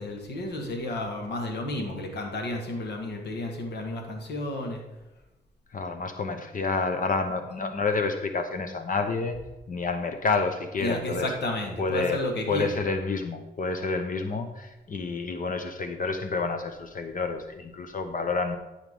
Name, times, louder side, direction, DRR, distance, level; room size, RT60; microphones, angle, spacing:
voice 1, 0.0-4.8 10.8-12.8, left 1 dB, 85° left, 3 dB, 1.7 m, -32 dB
voice 2, 5.7-9.4 9.7-11.3 11.8-18.6, left 4 dB, 50° left, 7 dB, 0.9 m, -29 dB
13.0 x 4.9 x 3.6 m, 1.0 s
cardioid pair, 60°, 17 cm